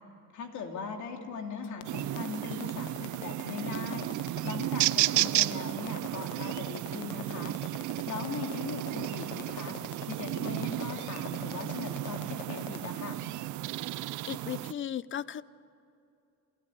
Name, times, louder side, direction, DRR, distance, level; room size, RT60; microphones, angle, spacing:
voice 1, 0.3-4.1 4.4-7.5 8.1-9.8 10.0-13.2, left 4 dB, 70° left, 3 dB, 2.9 m, -39 dB
sound 1, 1.6-12.9, left 13 dB, 90° left, 0.7 m, -45 dB
sound 2, 1.8-14.7, right 16 dB, 75° right, 0.5 m, -33 dB
voice 2, 14.3-15.4, left 10 dB, 40° left, 18 dB, 0.6 m, -36 dB
28.5 x 14.0 x 10.0 m, 2.7 s
cardioid pair, 130°, 30 cm